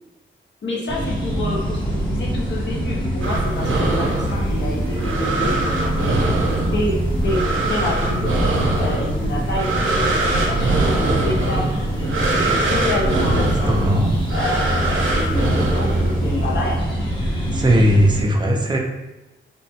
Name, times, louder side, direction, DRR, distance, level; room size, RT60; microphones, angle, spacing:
voice 1, 0.6-6.3 6.7-7.0 7.2-7.4 7.7-8.3 8.8-13.8 14.3-16.8, left 2 dB, 65° left, -3 dB, 0.7 m, -28 dB
sound 1, 0.9-18.2, right 1 dB, 25° left, 0.8 m, -24 dB
sound 2, 3.2-16.5, right 2 dB, 80° right, 0.6 m, -23 dB
voice 2, 13.7-14.1 17.5-18.8, equal, 20° right, 1 dB, 0.4 m, -17 dB
3.2 x 2.1 x 2.7 m, 1.0 s
wide cardioid pair, 125°, 21 cm